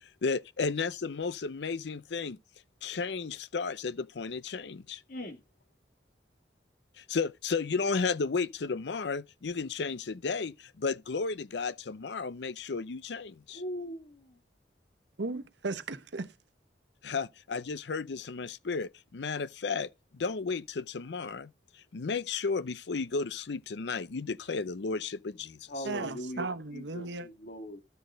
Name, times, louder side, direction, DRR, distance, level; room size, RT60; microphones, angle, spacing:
voice 1, 0.0-2.4 2.8-5.0 7.0-13.6 17.0-25.8, left 4 dB, 75° left, 0.6 m, -33 dB
voice 2, 5.1-5.4 13.5-14.4 25.7-27.8, equal, 55° left, 2.3 m, -40 dB
voice 3, 15.2-16.3 25.8-27.3, right 3 dB, 90° right, 1.0 m, -36 dB
13.0 x 6.4 x 3.9 m
head